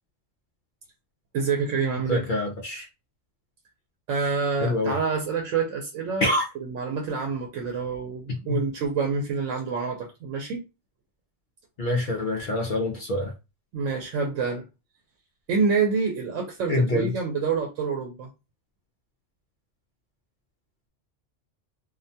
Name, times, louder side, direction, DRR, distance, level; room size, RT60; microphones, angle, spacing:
voice 1, 1.3-2.3 4.1-10.6 13.7-14.6 15.5-18.3, right 5 dB, 90° right, 0.9 m, -27 dB
voice 2, 2.1-2.9 4.6-4.9 6.2-6.4 8.3-8.6 11.8-13.3 16.7-17.1, left 2 dB, 60° left, 0.5 m, -25 dB
2.4 x 2.1 x 2.6 m
omnidirectional pair, 1.2 m